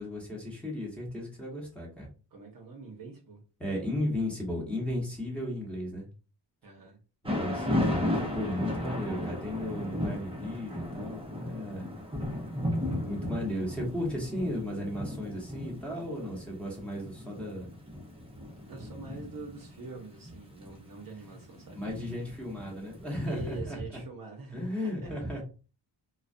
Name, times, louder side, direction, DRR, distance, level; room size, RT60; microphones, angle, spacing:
voice 1, 0.0-2.1 3.6-6.1 7.2-8.0 8.3-11.9 13.1-17.7 21.2-21.3 21.7-24.0 24.5-25.4, left 1 dB, 5° left, -4 dB, 1.0 m, -35 dB
voice 2, 2.3-3.4 6.6-7.0 18.7-22.2 23.2-25.2, right 3 dB, 50° right, 2 dB, 0.7 m, -45 dB
Thunder / Rain, 7.2-23.3, left 1 dB, 10° right, 0.6 m, -35 dB
2.3 x 2.2 x 2.5 m, 0.34 s
cardioid pair, 115°, 46 cm